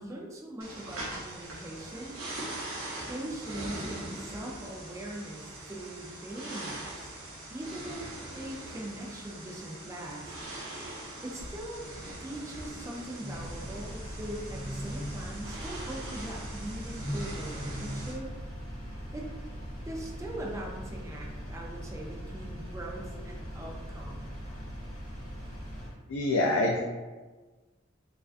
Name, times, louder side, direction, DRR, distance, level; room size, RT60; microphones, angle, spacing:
voice 1, 0.0-2.2 3.0-7.1 7.5-8.1 8.3-10.3 11.2-11.9 12.2-18.3 19.1-19.3 19.8-24.3, right 1 dB, 15° right, -2 dB, 0.3 m, -41 dB
sound 1, 0.6-18.1, right 1 dB, 90° right, 0.7 m, -41 dB
Engine, 13.3-25.9, equal, 35° left, 0.7 m, -41 dB
voice 2, 26.1-26.8, left 2 dB, 90° left, -1 dB, 0.3 m, -25 dB
2.4 x 2.2 x 2.4 m, 1.3 s
head